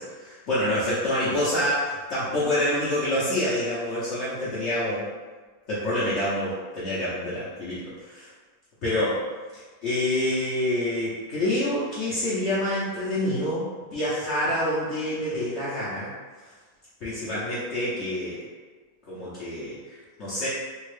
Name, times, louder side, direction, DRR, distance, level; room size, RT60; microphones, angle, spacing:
voice 1, 0.0-5.1 5.7-8.3 8.8-9.2 9.5-16.1 17.0-18.4 19.1-20.5, left 1 dB, 60° left, -10 dB, 1.0 m, -27 dB
3.5 x 2.3 x 3.2 m, 1.4 s
omnidirectional pair, 1.5 m